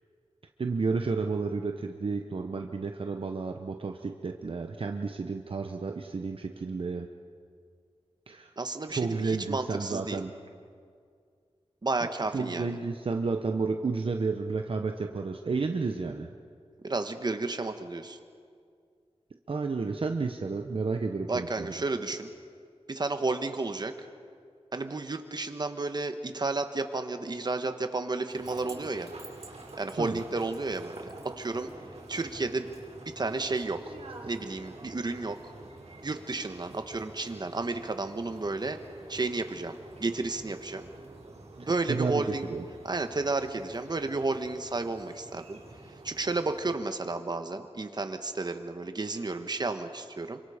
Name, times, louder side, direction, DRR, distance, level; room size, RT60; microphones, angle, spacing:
voice 1, 0.6-7.1 8.3-8.5 8.9-10.3 12.0-16.3 19.5-21.7 30.0-30.2 41.9-42.6, right 4 dB, 55° right, 4 dB, 1.0 m, -31 dB
voice 2, 8.6-10.2 11.8-12.8 16.8-18.2 21.3-22.3 22.9-23.9 24.7-29.1 29.8-31.1 31.4-31.7 32.1-32.7 33.0-33.9 34.3-35.5 36.0-38.8 39.1-39.7 40.0-40.9 41.6-42.5 42.8-45.6 46.0-50.4, right 3 dB, 40° right, 7 dB, 1.4 m, -32 dB
sound 1, 28.3-46.7, right 2 dB, 75° right, 4.4 m, -48 dB
27.5 x 25.0 x 5.1 m, 2.2 s
wide cardioid pair, 105°, 11 cm